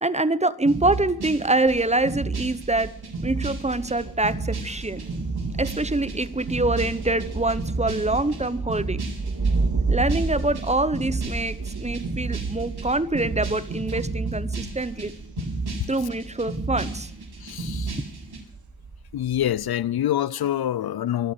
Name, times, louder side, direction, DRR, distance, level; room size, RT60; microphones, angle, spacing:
voice 1, 0.0-2.9 3.2-5.0 5.6-9.0 9.9-15.1 15.9-17.1, right 2 dB, 15° right, 0.9 m, -25 dB
sound 1, 0.6-18.4, right 3 dB, 80° right, 4.0 m, -32 dB
Thunder, 1.7-19.7, right 3 dB, 50° right, 2.0 m, -33 dB
voice 2, 17.4-18.0 19.1-21.3, left 11 dB, 70° left, 0.5 m, -26 dB
25.0 x 8.5 x 6.7 m
cardioid pair, 55°, 38 cm